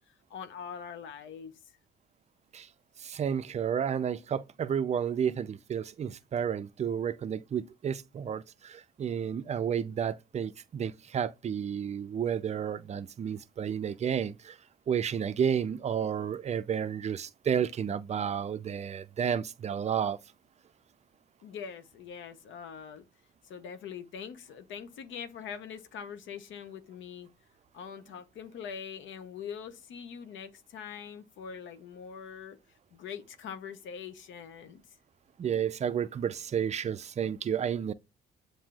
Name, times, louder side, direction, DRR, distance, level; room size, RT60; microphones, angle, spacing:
voice 1, 0.1-1.6 21.4-23.0 23.4-27.3 27.7-32.6 32.9-34.8, left 7 dB, 70° left, 0.7 m, -43 dB
voice 2, 3.0-14.6 14.9-20.2 35.4-37.9, right 8 dB, 35° right, 0.4 m, -31 dB
7.3 x 2.6 x 2.3 m
cardioid pair, 90°, 20 cm